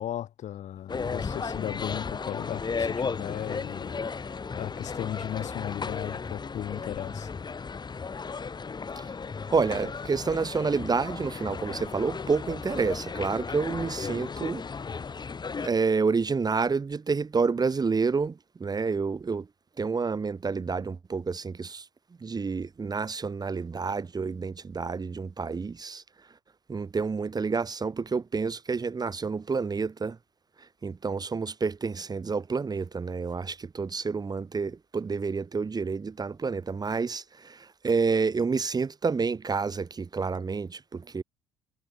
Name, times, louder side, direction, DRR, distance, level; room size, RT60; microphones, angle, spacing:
voice 1, 0.0-7.3, left 11 dB, 60° left, 7.9 m, -36 dB
sound 1, 0.9-15.7, left 5 dB, 30° left, 3.0 m, -35 dB
voice 2, 9.5-14.6 15.5-19.5 19.8-21.9 22.2-26.0 26.7-30.2 30.6-41.2, right 4 dB, 30° right, 1.7 m, -29 dB
hypercardioid pair, 60°, 14 cm